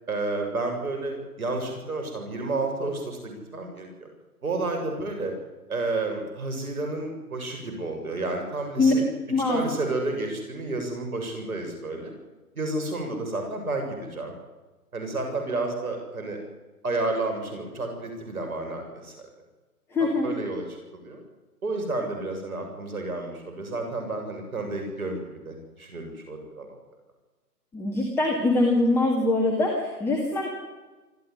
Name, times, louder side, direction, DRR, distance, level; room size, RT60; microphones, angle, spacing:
voice 1, 0.1-4.1 4.4-5.3 5.7-9.0 9.5-12.1 12.6-14.3 14.9-16.4 16.8-19.3 20.0-21.2 21.6-26.8, right 2 dB, 65° right, 4 dB, 7.5 m, -31 dB
voice 2, 9.3-9.6 19.9-20.3 27.7-30.5, left 2 dB, 5° left, 1 dB, 2.0 m, -23 dB
26.0 x 15.5 x 10.0 m, 1.2 s
figure-of-eight pair, 150°, 47 cm